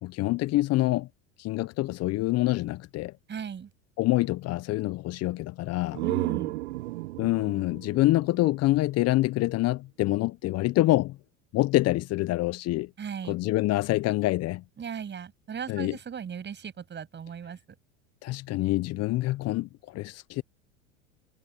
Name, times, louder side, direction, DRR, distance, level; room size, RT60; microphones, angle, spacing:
voice 1, 0.0-1.1 1.4-3.2 4.0-6.0 7.2-11.2 11.5-12.9 13.3-14.6 15.7-16.0 18.2-20.4, left 18 dB, 45° left, 0.9 m, -26 dB
voice 2, 3.3-3.7 6.0-6.6 13.0-13.4 14.8-17.6, right 7 dB, 30° right, 7.1 m, -37 dB
sound 1, 5.6-9.3, right 19 dB, 70° right, 1.0 m, -34 dB
hypercardioid pair, 85°, 36 cm